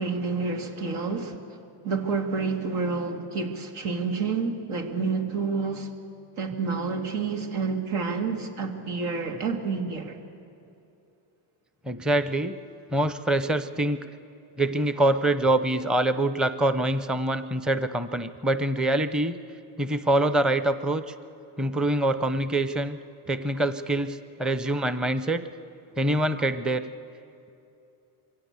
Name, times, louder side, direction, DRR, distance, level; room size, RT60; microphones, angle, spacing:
voice 1, 0.0-1.4 1.8-5.9 6.4-10.2, right 4 dB, 80° right, 4 dB, 2.5 m, -29 dB
voice 2, 11.9-12.6 12.9-14.1 14.6-19.4 19.8-21.1 21.6-23.0 23.3-25.4 26.0-26.9, right 1 dB, ahead, 12 dB, 0.7 m, -25 dB
22.5 x 16.5 x 8.3 m, 2.8 s
cardioid pair, 95°, 49 cm